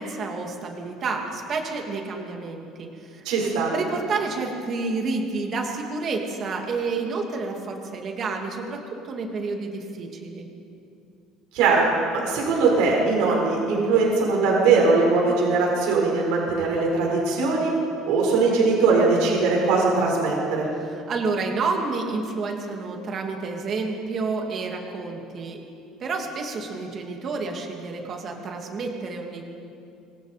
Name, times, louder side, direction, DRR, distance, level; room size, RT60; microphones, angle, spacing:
voice 1, 0.0-3.3 3.7-10.5 20.9-25.6 26.0-29.4, right 4 dB, 30° right, 2 dB, 2.8 m, -29 dB
voice 2, 3.2-3.7 11.5-11.8 12.1-17.7 18.1-20.7, right 4 dB, 70° right, -2 dB, 7.2 m, -20 dB
27.0 x 24.0 x 5.3 m, 2.5 s
cardioid pair, 170°, 0 cm